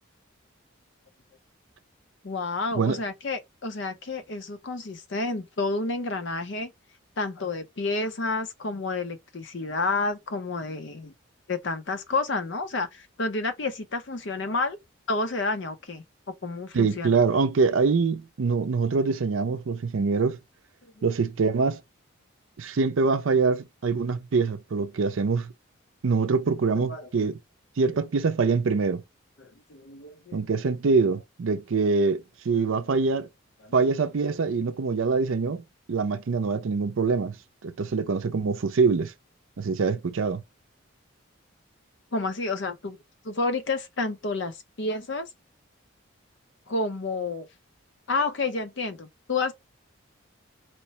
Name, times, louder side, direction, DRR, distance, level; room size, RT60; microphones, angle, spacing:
voice 1, 2.2-6.7 7.2-11.1 11.5-14.8 15.1-16.0 16.4-17.2 21.0-21.1 26.7-27.1 29.4-30.4 32.5-32.6 33.6-33.7 42.1-43.0 43.2-45.3 46.7-47.5 48.1-49.5, left 3 dB, 60° left, 0.6 m, -30 dB
voice 2, 16.7-20.4 21.0-21.8 22.6-25.5 26.0-27.4 27.8-29.0 30.3-33.3 33.7-35.6 35.9-37.4 37.6-39.1 39.6-40.4, right 4 dB, 75° right, 0.5 m, -24 dB
4.3 x 2.1 x 2.8 m
head